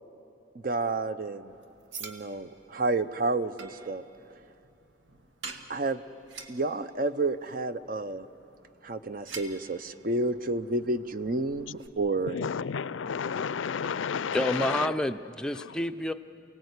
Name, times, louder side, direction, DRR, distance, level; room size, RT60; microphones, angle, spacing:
voice 1, 0.5-1.5 2.0-4.0 5.7-6.0 6.5-8.3 8.8-12.4, right 2 dB, 45° right, 12 dB, 0.7 m, -30 dB
sound 1, 1.5-11.9, right 4 dB, 80° right, 1.4 m, -48 dB
voice 2, 12.3-15.1 15.5-15.8, left 6 dB, 90° left, 17 dB, 0.5 m, -32 dB
voice 3, 14.3-16.1, left 1 dB, 5° left, 8 dB, 0.5 m, -29 dB
28.5 x 18.5 x 8.2 m, 2.6 s
head